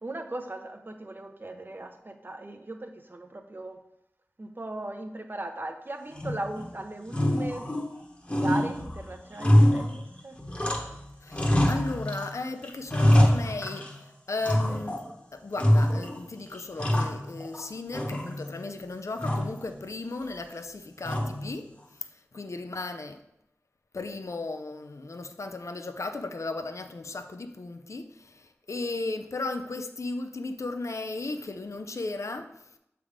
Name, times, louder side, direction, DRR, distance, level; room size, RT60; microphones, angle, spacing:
voice 1, 0.0-3.8 4.4-7.7 8.3-10.3, right 2 dB, 40° right, 6 dB, 0.7 m, -38 dB
sound 1, 6.1-6.7 7.1-8.0 8.3-11.0 11.3-12.3 12.6-14.0 14.4-15.1 15.6-16.2 16.5-17.6 17.9-18.6 19.2-19.6 21.0-21.6, left 1 dB, 25° left, 1.1 m, -25 dB
voice 2, 11.2-13.9 14.3-15.0 15.3-21.7 22.3-23.2 23.9-32.5, left 3 dB, 65° left, 7 dB, 0.5 m, -35 dB
7.1 x 3.5 x 5.0 m, 0.80 s
wide cardioid pair, 55°, 5 cm